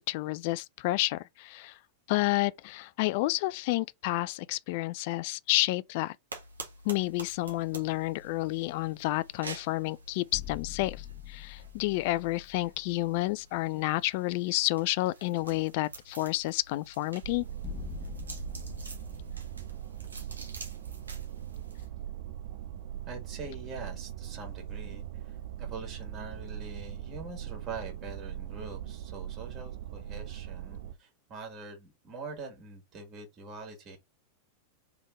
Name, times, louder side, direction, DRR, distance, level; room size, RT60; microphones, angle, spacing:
voice 1, 0.0-1.8 2.1-6.2 6.9-17.4, left 19 dB, 50° left, 0.3 m, -30 dB
sound 1, 6.3-21.9, right 3 dB, 75° right, 1.2 m, -49 dB
sound 2, 10.3-13.8 14.2-14.3 17.6-21.2, left 11 dB, 30° left, 0.7 m, -45 dB
Viral Vocoded Flick, 17.2-30.9, right 11 dB, 60° right, 0.7 m, -40 dB
voice 2, 23.1-34.0, right 3 dB, 30° right, 2.1 m, -44 dB
3.5 x 3.4 x 3.5 m
figure-of-eight pair, 90°, 0 cm